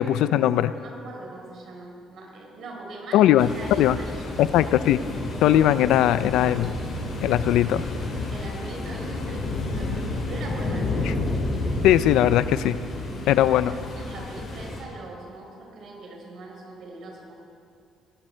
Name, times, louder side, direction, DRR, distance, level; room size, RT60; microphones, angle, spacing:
voice 1, 0.0-0.7 3.1-4.0 4.4-5.0 5.4-6.7 7.2-7.8 11.0-11.1 11.8-12.8 13.3-13.7, left 12 dB, 85° left, 14 dB, 0.5 m, -19 dB
voice 2, 0.6-4.4 8.3-11.1 13.4-17.3, right 2 dB, 60° right, 0 dB, 4.4 m, -41 dB
sound 1, 3.4-14.8, left 2 dB, 55° left, 4.9 m, -30 dB
19.5 x 14.0 x 4.5 m, 2.4 s
cardioid pair, 115°, 0 cm